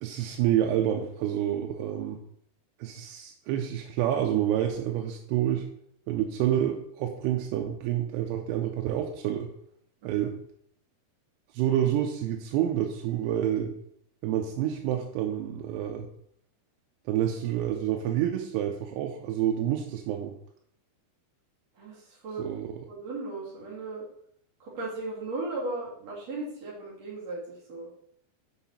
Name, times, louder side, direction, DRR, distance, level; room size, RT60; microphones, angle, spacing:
voice 1, 0.0-2.2 2.8-5.7 6.1-9.5 10.0-10.4 11.5-13.7 14.2-16.1 17.1-20.3 22.4-22.7, right 11 dB, 90° right, 2 dB, 2.7 m, -28 dB
voice 2, 21.8-22.5 22.9-24.0 24.6-27.9, right 2 dB, 45° right, -5 dB, 2.8 m, -36 dB
6.9 x 5.7 x 4.2 m, 0.68 s
omnidirectional pair, 4.7 m